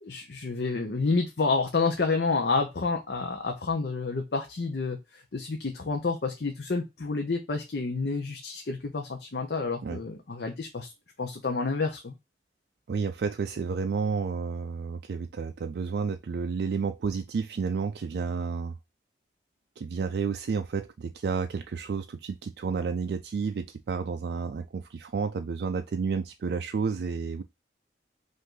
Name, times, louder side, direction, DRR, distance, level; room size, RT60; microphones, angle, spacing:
voice 1, 0.0-10.9 11.2-12.1, left 4 dB, 65° left, 0.7 m, -29 dB
voice 2, 12.9-18.7 19.8-27.4, right 5 dB, 65° right, 0.3 m, -31 dB
5.4 x 2.6 x 3.8 m
head